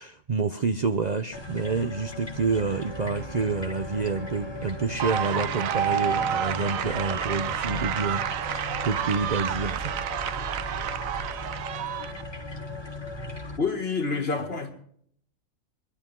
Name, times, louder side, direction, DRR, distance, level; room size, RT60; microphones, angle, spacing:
voice 1, 0.0-9.9, right 4 dB, 40° right, 0.7 m, -28 dB
sound 1, 1.3-13.6, left 2 dB, 20° left, 1.8 m, -38 dB
sound 2, 2.7-8.6, right 2 dB, 70° right, 3.1 m, -45 dB
sound 3, 5.0-12.2, right 9 dB, 90° right, 1.2 m, -29 dB
voice 2, 13.6-14.7, left 4 dB, 50° left, 2.3 m, -27 dB
25.0 x 11.5 x 3.7 m
omnidirectional pair, 1.4 m